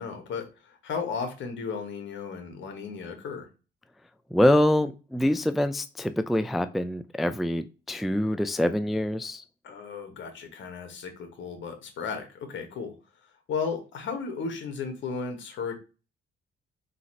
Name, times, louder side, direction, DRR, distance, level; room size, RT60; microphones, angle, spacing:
voice 1, 0.0-3.5 9.6-12.9 13.2-15.8, left 5 dB, 70° left, 6 dB, 1.2 m, -35 dB
voice 2, 4.3-9.4, left 1 dB, ahead, 11 dB, 0.3 m, -25 dB
4.0 x 2.5 x 4.3 m, 0.32 s
cardioid pair, 90°, 20 cm